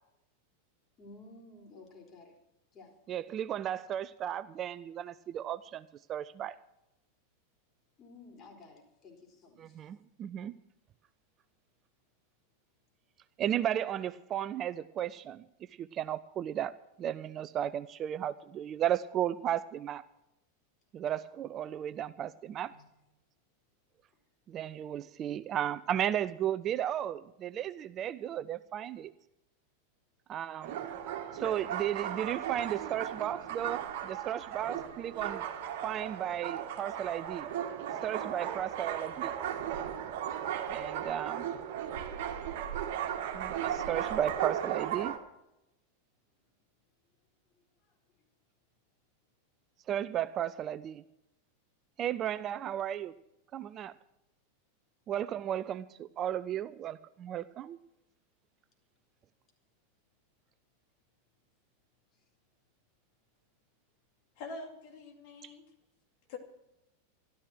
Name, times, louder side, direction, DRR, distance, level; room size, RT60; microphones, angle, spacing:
voice 1, 1.0-2.4 2.7-2.9 8.0-9.8 22.7-22.8 24.1-24.2 31.5-31.6 47.5-48.0 62.1-62.2, left 3 dB, 30° left, 2 dB, 4.3 m, -54 dB
voice 2, 3.1-6.6 9.6-10.5 13.4-15.4 15.8-16.7 17.0-20.0 20.9-22.7 24.5-29.1 30.3-30.8 31.3-35.4 35.8-37.5 38.0-39.3 40.7-41.5 43.3-45.1 49.9-51.0 52.0-53.1 53.5-53.9 55.1-57.8 65.4-65.5, right 10 dB, 30° right, 15 dB, 0.4 m, -34 dB
sound 1, 30.6-45.2, right 10 dB, 50° right, 1.7 m, -36 dB
voice 3, 64.4-65.6 66.3-66.4, left 3 dB, 45° left, 3 dB, 2.4 m, -44 dB
13.0 x 13.0 x 6.3 m, 0.88 s
figure-of-eight pair, 90°, 0 cm